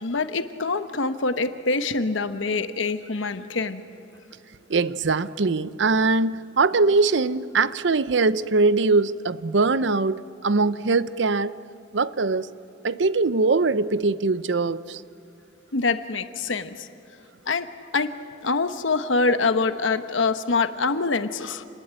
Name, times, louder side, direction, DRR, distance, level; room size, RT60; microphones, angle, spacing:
voice 1, 0.0-3.8 15.7-16.8 17.5-17.7 17.9-18.1 18.4-21.6, left 3 dB, 85° left, 10 dB, 1.1 m, -25 dB
voice 2, 4.7-11.6 11.9-12.5 12.8-15.0, right 3 dB, 70° right, 16 dB, 0.7 m, -22 dB
28.5 x 20.0 x 9.0 m, 2.7 s
head